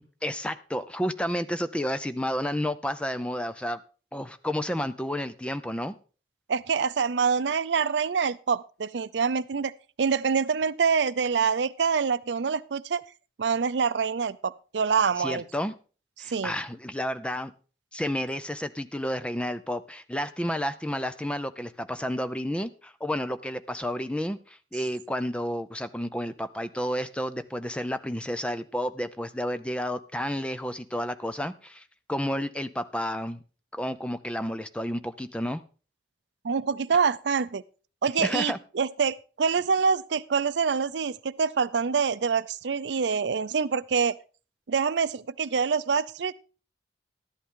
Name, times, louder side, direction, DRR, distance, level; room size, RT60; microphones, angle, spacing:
voice 1, 0.2-3.8 4.1-6.0 15.2-15.7 16.2-17.5 17.9-31.8 32.1-33.4 33.7-35.6 38.2-38.6, equal, 5° left, 11 dB, 0.5 m, -31 dB
voice 2, 6.5-9.7 10.0-13.0 13.4-15.4 16.3-16.5 36.4-37.6 38.0-44.1 44.7-46.4, right 6 dB, 80° right, 16 dB, 0.5 m, -26 dB
13.0 x 11.0 x 3.7 m, 0.37 s
head